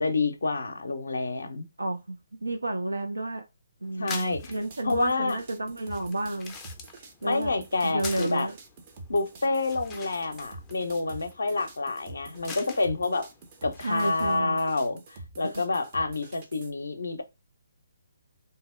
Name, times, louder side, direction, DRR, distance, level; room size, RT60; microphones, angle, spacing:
voice 1, 0.0-1.7 4.0-4.5 4.8-5.4 7.2-8.5 9.1-13.3 13.6-17.2, left 3 dB, 70° left, 0.5 m, -28 dB
voice 2, 1.8-3.4 3.8-6.5 7.2-7.6 7.8-8.5 13.8-14.6 15.4-15.5, right 2 dB, 80° right, 0.5 m, -31 dB
sound 1, 3.8-14.6, left 4 dB, 15° left, 0.4 m, -46 dB
sound 2, 4.3-16.7, right 2 dB, 35° right, 0.6 m, -46 dB
2.7 x 2.0 x 3.6 m
figure-of-eight pair, 140°, 0 cm